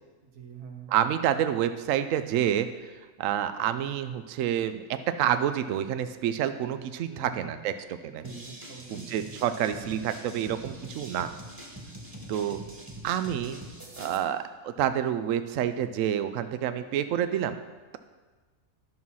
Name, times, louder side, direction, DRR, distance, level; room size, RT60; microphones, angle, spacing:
voice 1, 0.2-0.9 7.1-7.5 8.2-9.1, right 5 dB, 90° right, 3 dB, 1.7 m, -44 dB
voice 2, 0.9-8.2 8.9-11.3 12.3-12.6 13.0-13.6 14.0-17.6, right 10 dB, 70° right, 10 dB, 0.9 m, -28 dB
sound 1, 8.2-14.2, right 1 dB, 15° right, 1.3 m, -44 dB
11.0 x 6.2 x 5.5 m, 1.3 s
omnidirectional pair, 1.6 m